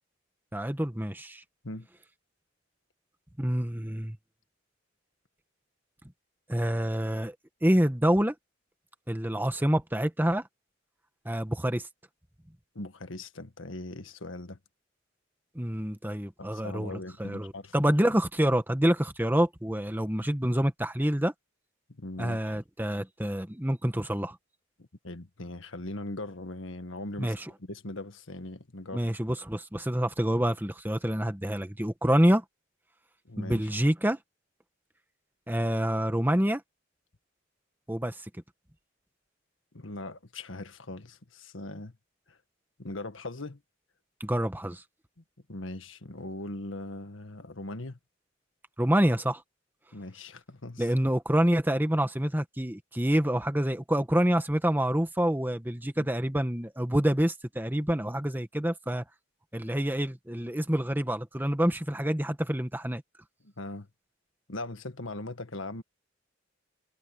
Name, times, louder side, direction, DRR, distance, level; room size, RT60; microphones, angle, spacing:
voice 1, 0.5-1.4 3.4-4.2 6.5-7.4 7.6-8.3 9.1-10.4 11.3-11.9 15.6-16.9 17.2-21.3 22.2-24.4 27.2-27.5 28.9-32.4 33.4-34.2 35.5-36.6 37.9-38.2 44.2-44.8 48.8-49.4 50.8-59.0 59.5-63.0, equal, 10° right, 1.6 m, -27 dB
voice 2, 12.8-14.6 16.4-17.7 22.0-22.4 24.8-27.3 27.6-29.0 33.3-33.7 39.7-41.9 42.3-42.4 42.8-43.6 45.5-48.0 49.9-50.9 56.0-56.1 63.4-63.9 64.5-65.8, left 2 dB, 80° left, 1.7 m, -40 dB
head